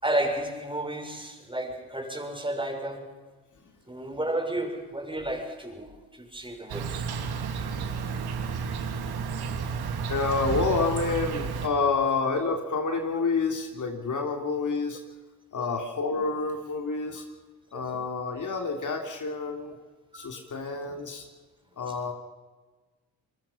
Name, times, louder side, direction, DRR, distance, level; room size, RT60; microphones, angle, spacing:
voice 1, 0.0-3.1 3.9-7.0 13.1-13.2 15.6-15.7 20.1-20.4, right 1 dB, 15° right, 3 dB, 6.4 m, -32 dB
Insect, 6.7-11.7, right 6 dB, 70° right, 2.9 m, -32 dB
voice 2, 10.1-15.0 15.5-17.2 17.7-19.7 20.1-21.3 21.8-22.1, left 4 dB, 50° left, 3 dB, 3.4 m, -28 dB
28.0 x 21.0 x 5.7 m, 1.3 s
supercardioid pair, 55°, 39 cm